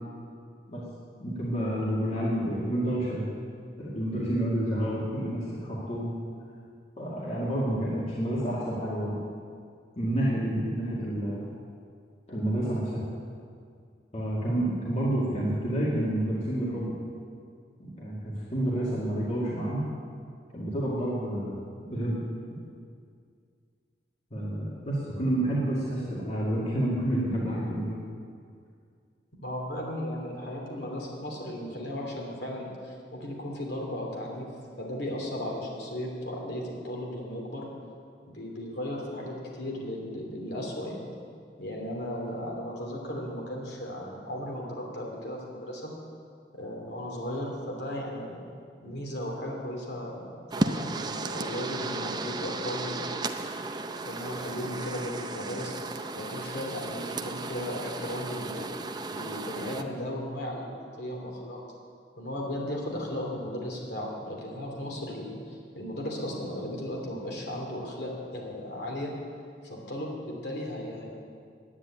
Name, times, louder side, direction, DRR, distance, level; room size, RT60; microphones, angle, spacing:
voice 1, 1.2-3.3 3.8-6.1 7.0-9.2 10.0-11.5 12.3-13.0 14.1-16.9 17.8-18.2 18.5-19.8 20.5-21.6 21.9-22.2 24.3-28.0, right 1 dB, 40° left, -7 dB, 2.3 m, -29 dB
voice 2, 29.4-34.5 34.8-37.7 38.2-41.1 41.6-45.9 46.5-48.4 48.8-53.1 54.0-55.7 56.1-58.7 59.1-61.6 62.2-69.1 69.6-71.1, left 1 dB, 65° left, -1 dB, 3.0 m, -36 dB
sound 1, 50.5-59.8, right 3 dB, 25° right, 0.6 m, -34 dB
10.5 x 9.7 x 8.6 m, 2.2 s
head